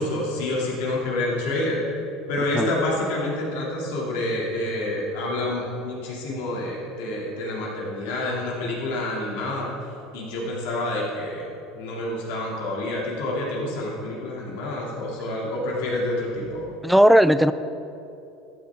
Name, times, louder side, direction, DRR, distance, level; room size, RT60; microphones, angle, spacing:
voice 1, 0.0-1.8 2.3-9.7 10.1-16.7, left 1 dB, 80° left, -4 dB, 3.0 m, -28 dB
voice 2, 16.8-17.5, equal, ahead, 14 dB, 0.3 m, -16 dB
14.0 x 9.2 x 3.8 m, 2.8 s
supercardioid pair, 120°, 0 cm